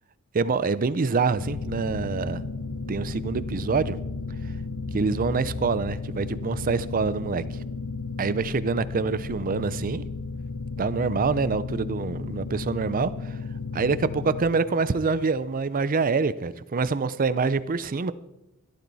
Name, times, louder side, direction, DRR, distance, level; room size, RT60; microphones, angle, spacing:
voice 1, 0.3-2.4 2.9-4.0 4.4-4.5 4.9-7.4 8.2-10.0 10.8-13.4 13.7-18.1, right 4 dB, 40° right, 0.5 m, -26 dB
sound 1, 1.3-8.4, left 1 dB, 10° left, 0.7 m, -42 dB
sound 2, 1.4-14.4, left 4 dB, 55° left, 0.8 m, -34 dB
16.5 x 12.5 x 4.1 m
head